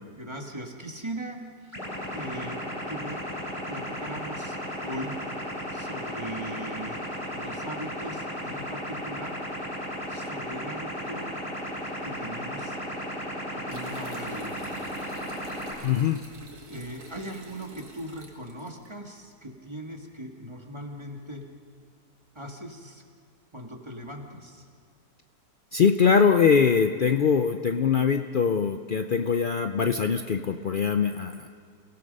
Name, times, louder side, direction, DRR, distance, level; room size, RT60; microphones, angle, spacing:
voice 1, 0.1-1.4 2.0-3.2 3.7-5.2 5.7-7.0 7.3-9.4 10.1-11.3 12.0-12.8 13.5-14.9 16.6-21.4 22.4-23.0 23.5-24.6, right 1 dB, 15° right, 1 dB, 1.9 m, -39 dB
sound 1, 1.7-15.7, equal, 20° left, 3.9 m, -35 dB
sound 2, 13.7-18.9, right 2 dB, 70° right, 2.5 m, -48 dB
voice 2, 15.8-16.2 25.7-31.5, left 6 dB, 70° left, 7 dB, 0.4 m, -22 dB
28.5 x 17.0 x 5.4 m, 2.2 s
omnidirectional pair, 1.7 m